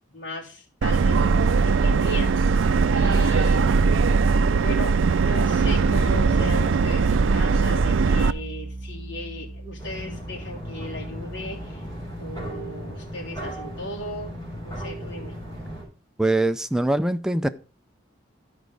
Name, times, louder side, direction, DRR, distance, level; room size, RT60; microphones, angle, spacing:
voice 1, 0.1-2.4 2.9-3.7 4.6-11.8 12.2-14.3 14.6-15.4, left 1 dB, 70° left, 3.3 m, -36 dB
Subway metro underground, 0.8-8.3, right 4 dB, 85° right, 0.4 m, -20 dB
Bass guitar, 5.6-12.0, right 2 dB, 35° right, 4.7 m, -34 dB
sound 1, 9.8-15.8, equal, 15° left, 4.1 m, -36 dB
voice 2, 16.2-17.5, right 1 dB, 5° right, 0.4 m, -22 dB
12.5 x 5.1 x 4.7 m
head